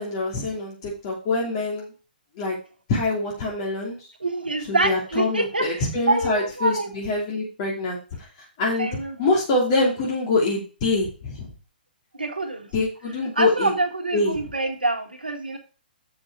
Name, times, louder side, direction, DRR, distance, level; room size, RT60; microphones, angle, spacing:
voice 1, 0.0-1.9 2.4-2.6 2.9-4.1 4.7-8.0 8.4-8.9 9.2-11.5 12.7-13.7 14.1-14.4, left 2 dB, 35° left, -4 dB, 2.9 m, -25 dB
voice 2, 4.2-5.7 6.1-6.9 8.8-9.3 12.2-12.7 13.4-15.6, right 2 dB, 75° right, 5 dB, 1.8 m, -25 dB
7.7 x 6.1 x 4.8 m, 0.34 s
figure-of-eight pair, 120°, 5 cm